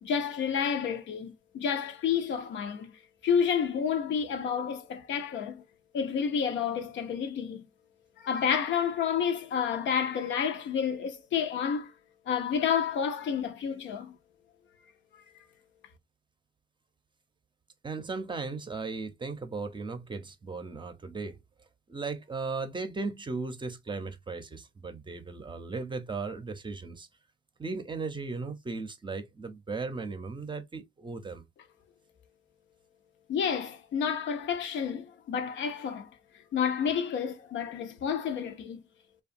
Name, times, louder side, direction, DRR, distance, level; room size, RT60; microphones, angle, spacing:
voice 1, 0.0-2.9 3.2-5.6 5.9-7.7 8.2-11.9 12.3-14.2 33.3-36.1 36.5-38.8, left 7 dB, 70° left, 0.6 m, -30 dB
voice 2, 17.8-21.4 21.9-27.1 27.6-31.4, right 4 dB, 25° right, 0.6 m, -36 dB
2.7 x 2.3 x 2.5 m
cardioid pair, 90°, 20 cm